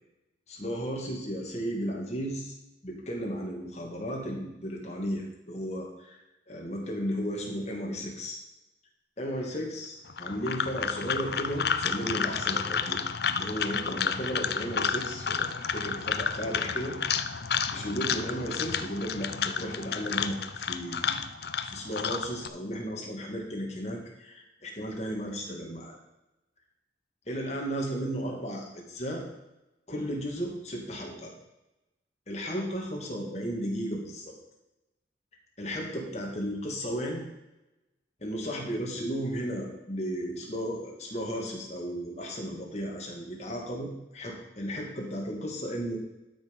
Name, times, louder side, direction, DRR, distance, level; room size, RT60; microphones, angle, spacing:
voice 1, 0.5-2.5 2.8-8.4 9.2-13.0 13.3-17.0 17.7-21.2 21.6-26.0 27.3-29.2 29.9-31.3 32.3-34.4 35.6-37.2 38.2-46.0, equal, 35° left, -1 dB, 2.4 m, -34 dB
sound 1, 10.1-22.5, left 6 dB, 60° left, 0.6 m, -31 dB
12.5 x 6.1 x 5.5 m, 0.95 s
head